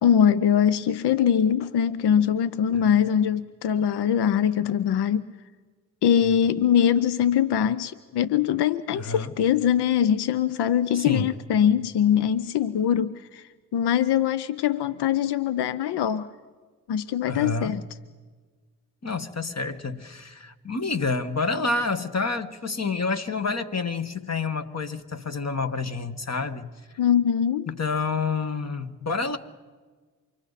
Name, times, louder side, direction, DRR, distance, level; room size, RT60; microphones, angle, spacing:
voice 1, 0.0-5.3 6.0-16.3 16.9-17.8 27.0-27.7, left 9 dB, 85° left, 0.7 m, -22 dB
voice 2, 8.9-9.3 10.9-11.3 17.3-17.8 19.0-26.7 27.7-29.4, left 4 dB, 40° left, 1.6 m, -28 dB
28.5 x 25.0 x 4.1 m
supercardioid pair, 40°, 40 cm